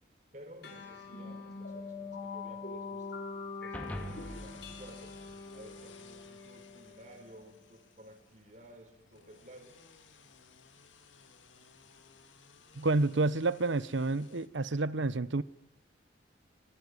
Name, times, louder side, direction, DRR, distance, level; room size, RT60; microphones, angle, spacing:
voice 1, 0.3-3.1 3.6-5.2 5.5-9.8, right 1 dB, 40° right, 5 dB, 4.3 m, -54 dB
sound 1, 0.6-7.5, left 4 dB, 65° left, 4.4 m, -44 dB
sound 2, 2.9-14.5, left 5 dB, 90° left, 2.3 m, -59 dB
sound 3, 3.7-6.2, equal, 10° left, 2.5 m, -45 dB
voice 2, 12.7-15.4, right 3 dB, 85° right, 17 dB, 0.9 m, -29 dB
24.5 x 21.0 x 9.7 m, 0.97 s
head